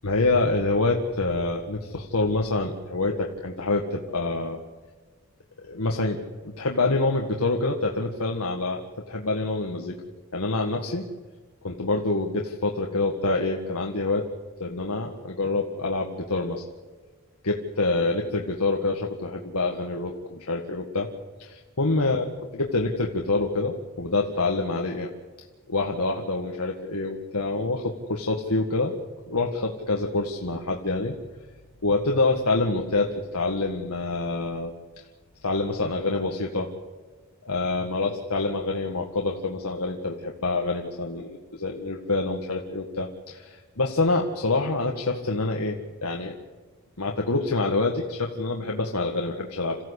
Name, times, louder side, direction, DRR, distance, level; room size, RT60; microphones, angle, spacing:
voice 1, 0.0-4.6 5.6-6.2 6.4-8.8 9.1-10.0 10.3-11.1 11.6-14.3 14.6-16.6 17.4-21.1 21.4-25.1 25.7-28.9 29.3-31.1 31.8-34.7 35.4-36.7 37.5-46.3 47.0-49.8, left 3 dB, 90° left, 1 dB, 1.8 m, -26 dB
28.0 x 15.5 x 8.3 m, 1.4 s
head